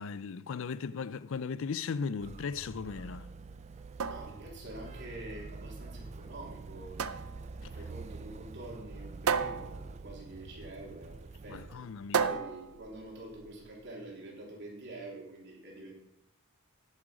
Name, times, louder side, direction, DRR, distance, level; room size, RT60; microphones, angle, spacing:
voice 1, 0.0-3.3 7.6-7.7 11.5-12.3, left 5 dB, 60° left, 0.4 m, -37 dB
Motor vehicle (road), 2.2-11.8, right 3 dB, 30° right, 0.3 m, -46 dB
sound 1, 3.7-13.7, right 6 dB, 80° right, 0.6 m, -36 dB
voice 2, 4.1-7.0 7.7-11.8 12.2-15.9, right 1 dB, 55° right, 3.3 m, -46 dB
9.9 x 9.9 x 5.0 m
head